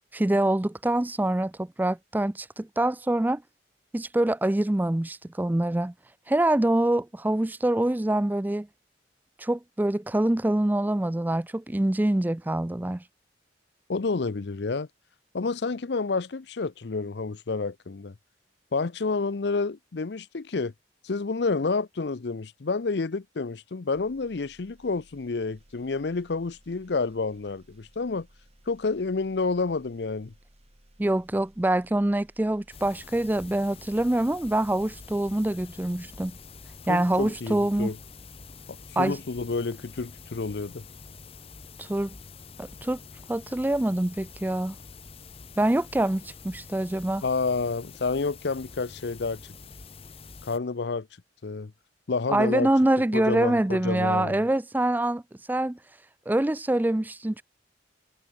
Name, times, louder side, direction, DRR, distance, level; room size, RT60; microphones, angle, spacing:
voice 1, 0.1-3.4 3.9-5.9 6.3-8.7 9.4-13.0 31.0-36.3 36.9-37.9 39.0-39.2 41.8-42.1 42.6-43.0 43.3-44.8 45.6-47.2 52.3-55.2 55.5-55.8 56.3-57.4, right 1 dB, 10° right, 0.3 m, -25 dB
voice 2, 13.9-14.9 15.3-18.1 18.7-20.7 21.0-28.3 28.7-30.3 36.9-38.0 38.7-40.8 47.2-49.4 50.4-51.1 51.4-51.7 52.1-52.7 53.1-54.4, left 4 dB, 65° left, 0.6 m, -29 dB
sound 1, 23.9-37.3, right 1 dB, 35° right, 3.2 m, -59 dB
sound 2, 32.7-50.6, left 4 dB, 30° left, 0.9 m, -46 dB
head